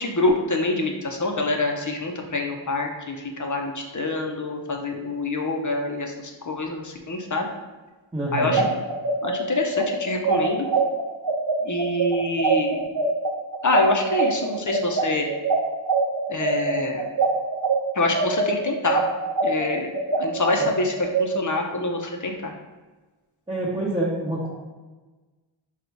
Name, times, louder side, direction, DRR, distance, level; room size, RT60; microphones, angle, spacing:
voice 1, 0.0-7.5 8.3-8.6 9.2-10.7 11.6-12.8 13.6-15.3 16.3-17.1 17.9-19.0 19.4-22.5, left 2 dB, 40° left, 2 dB, 0.6 m, -26 dB
voice 2, 8.1-8.6 20.6-20.7 23.5-24.5, right 1 dB, 10° right, -7 dB, 0.9 m, -26 dB
sound 1, 8.4-17.8 18.1-21.2, right 4 dB, 45° right, 0.8 m, -23 dB
3.9 x 2.4 x 4.4 m, 1.2 s
wide cardioid pair, 55°, 47 cm